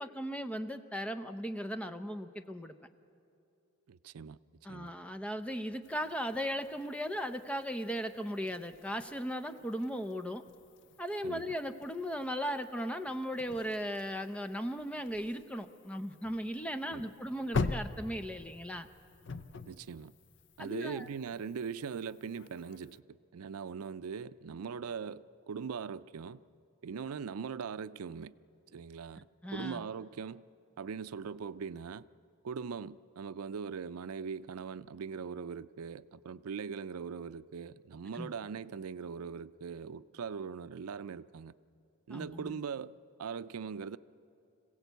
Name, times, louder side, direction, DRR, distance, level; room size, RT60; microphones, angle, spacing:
voice 1, 0.0-2.7 4.6-10.4 11.0-18.9 20.6-21.1 29.4-29.9 38.1-38.3 42.1-42.6, equal, 5° left, 0.6 m, -37 dB
voice 2, 3.9-4.4 4.7-4.9 11.2-11.5 16.9-17.0 19.7-20.1 20.6-26.4 26.8-28.3 28.7-29.3 29.5-30.4 30.8-32.0 32.4-41.5 42.1-42.9 43.2-44.0, right 6 dB, 85° right, 0.4 m, -41 dB
sound 1, 5.8-23.0, left 3 dB, 55° left, 0.6 m, -44 dB
26.0 x 16.5 x 8.1 m
head